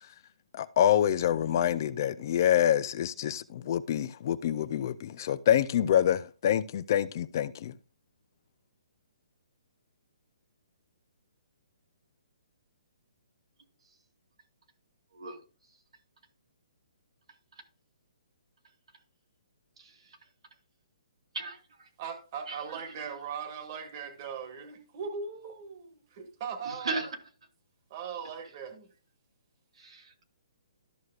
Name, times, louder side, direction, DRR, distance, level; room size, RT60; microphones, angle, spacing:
voice 1, 0.6-7.7, left 10 dB, 35° left, 0.4 m, -26 dB
voice 2, 21.3-21.9 22.5-22.8 26.6-27.1 29.8-30.2, right 3 dB, 75° right, 2.4 m, -37 dB
voice 3, 22.0-27.1 27.9-28.9, right 6 dB, 30° right, 1.5 m, -39 dB
13.0 x 6.3 x 2.3 m
hypercardioid pair, 170°, 3 cm